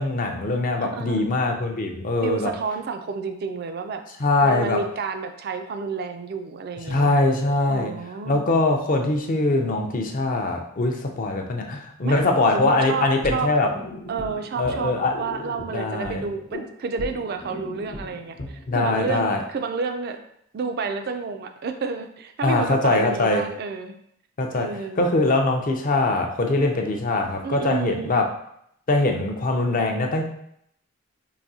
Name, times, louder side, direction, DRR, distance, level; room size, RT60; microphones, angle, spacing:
voice 1, 0.0-2.5 4.2-4.8 6.9-7.9 8.2-13.7 14.6-15.1 15.7-16.2 18.7-19.4 22.4-23.4 24.4-28.2 28.9-30.2, left 2 dB, 40° left, 2 dB, 0.5 m, -22 dB
voice 2, 0.8-1.2 2.2-4.0 4.4-7.1 7.7-8.5 12.0-13.5 14.1-20.2 20.5-24.0 24.5-25.0 27.4-28.1, right 4 dB, 45° right, 6 dB, 0.3 m, -30 dB
sound 1, 13.2-19.4, left 1 dB, 80° left, 0.9 m, -38 dB
4.8 x 2.6 x 2.7 m, 0.71 s
head